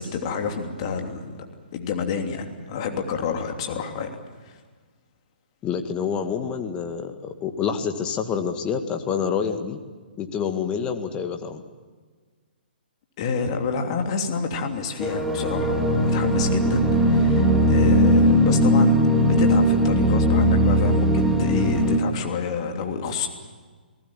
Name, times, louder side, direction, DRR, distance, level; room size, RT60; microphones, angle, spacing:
voice 1, 0.0-1.4 1.7-4.1 13.2-23.3, left 5 dB, 35° left, 4 dB, 3.0 m, -29 dB
voice 2, 5.6-9.8 10.2-11.6, left 7 dB, 20° left, 6 dB, 1.9 m, -27 dB
sound 1, 15.0-22.0, equal, ahead, 2.3 m, -19 dB
29.0 x 18.5 x 7.4 m, 1.5 s
figure-of-eight pair, 125°, 5 cm